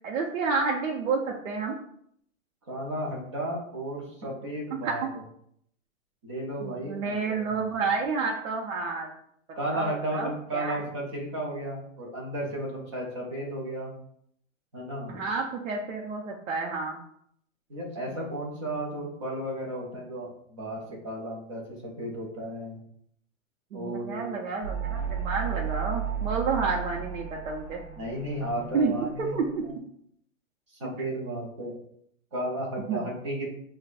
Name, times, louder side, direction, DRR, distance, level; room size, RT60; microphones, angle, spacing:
voice 1, 0.0-1.8 4.8-4.9 6.6-9.1 9.7-10.8 15.1-17.0 23.7-27.8 28.7-28.9 29.2-29.6 32.9-33.0, right 4 dB, 70° right, -1 dB, 0.7 m, -30 dB
voice 2, 2.7-5.0 6.2-7.6 9.5-13.9 14.7-15.2 17.7-20.8 21.0-22.8 23.7-24.4 28.0-29.3 30.8-31.7 32.3-33.5, right 1 dB, 25° right, -3 dB, 0.6 m, -34 dB
sound 1, 24.6-29.7, right 7 dB, 30° left, 0.5 m, -34 dB
5.3 x 2.2 x 2.5 m, 0.68 s
hypercardioid pair, 170°, 40 cm